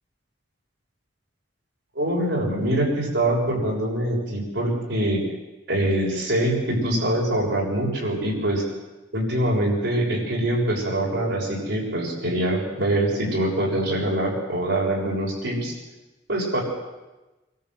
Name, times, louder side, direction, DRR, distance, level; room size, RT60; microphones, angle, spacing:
voice 1, 2.0-5.2 5.7-8.6 9.1-15.7 16.3-16.6, right 1 dB, 75° right, -2 dB, 7.0 m, -24 dB
26.0 x 14.0 x 7.9 m, 1.1 s
head